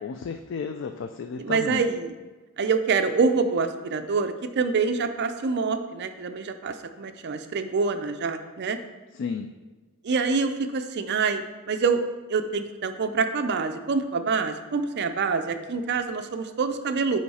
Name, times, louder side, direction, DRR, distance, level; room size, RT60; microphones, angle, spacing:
voice 1, 0.0-1.8 9.1-9.5, left 5 dB, 60° left, 7 dB, 0.3 m, -33 dB
voice 2, 1.4-2.1 2.6-8.8 10.0-12.0 12.3-17.2, right 4 dB, 50° right, 8 dB, 0.5 m, -26 dB
9.2 x 3.2 x 4.2 m, 1.3 s
head